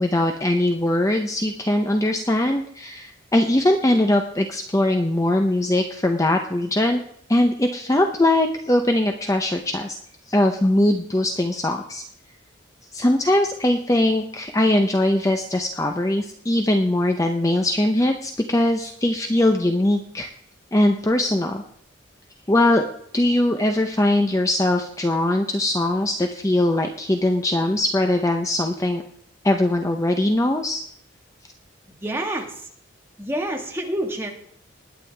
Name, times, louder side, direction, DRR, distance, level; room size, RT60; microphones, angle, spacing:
voice 1, 0.0-7.0 7.3-10.0 10.3-12.0 12.9-20.3 20.7-21.6 22.5-22.9 23.1-29.0 29.4-30.8, left 1 dB, 15° left, 4 dB, 0.7 m, -21 dB
voice 2, 32.0-32.5 33.2-34.3, right 1 dB, 10° right, 1 dB, 1.7 m, -27 dB
20.0 x 9.1 x 3.4 m, 0.67 s
head